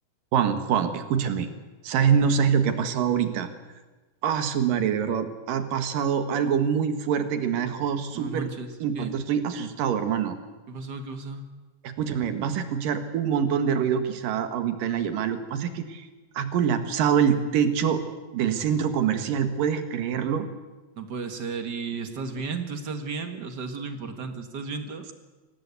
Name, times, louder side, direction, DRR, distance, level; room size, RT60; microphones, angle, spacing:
voice 1, 0.3-1.5 1.8-3.5 4.2-8.5 8.8-10.4 11.8-16.1 16.3-18.0 18.3-20.5, right 7 dB, 70° right, 9 dB, 3.1 m, -25 dB
voice 2, 8.1-8.7 8.9-9.1 10.7-11.5 21.0-25.1, right 4 dB, 45° right, 7 dB, 1.4 m, -34 dB
25.0 x 17.5 x 8.3 m, 1.2 s
omnidirectional pair, 4.1 m